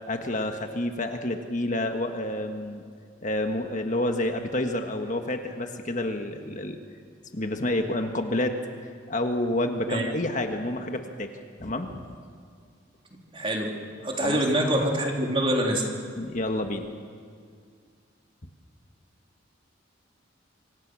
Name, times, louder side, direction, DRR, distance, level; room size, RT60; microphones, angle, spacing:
voice 1, 0.1-2.8 3.2-6.8 7.3-8.6 9.1-11.3 11.6-12.1 14.2-14.4 16.2-16.9, left 1 dB, 40° left, 5 dB, 1.5 m, -29 dB
voice 2, 13.3-13.7 14.0-15.8, right 1 dB, 30° right, 0 dB, 3.3 m, -25 dB
26.5 x 25.0 x 6.3 m, 2.1 s
head